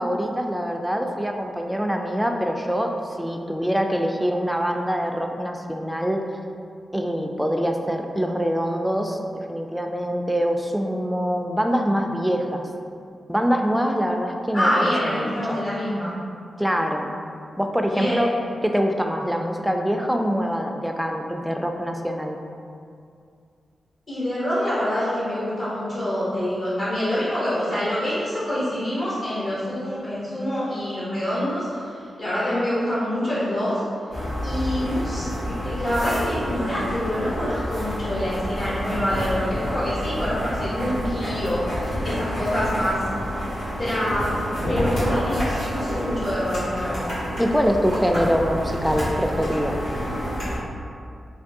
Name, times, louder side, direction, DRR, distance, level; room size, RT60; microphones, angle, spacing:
voice 1, 0.0-6.2 6.9-12.6 13.3-15.6 16.6-17.1 17.6-18.3 18.6-22.4 47.4-49.8, equal, 5° right, 3 dB, 0.3 m, -24 dB
voice 2, 14.5-16.1 17.8-18.3 24.1-31.9 32.2-33.8 34.4-43.0 43.8-44.4 44.7-47.2, equal, 60° left, -10 dB, 0.9 m, -26 dB
sound 1, 34.1-50.6, equal, 90° left, 1.5 m, -28 dB
3.4 x 2.2 x 2.6 m, 2.4 s
cardioid pair, 45°, 0 cm